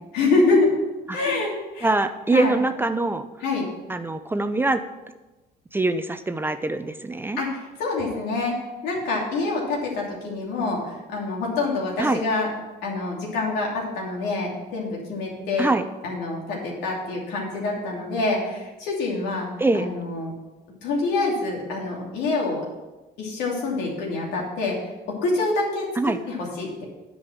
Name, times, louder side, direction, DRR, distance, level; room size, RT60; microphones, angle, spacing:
voice 1, 0.1-0.7 1.1-1.9 2.3-2.5 3.4-3.7 7.4-12.5 12.8-15.7 16.0-19.5 19.7-20.3 20.8-22.6 23.2-24.8 25.2-25.9 26.3-26.8, left 3 dB, 90° left, -2 dB, 2.8 m, -26 dB
voice 2, 1.8-3.3 3.9-4.8 5.7-7.4 12.0-12.2 15.6-15.8 19.6-19.9 26.0-26.2, right 2 dB, 15° right, 10 dB, 0.5 m, -23 dB
9.7 x 5.3 x 6.0 m, 1.1 s
cardioid pair, 110°, 17 cm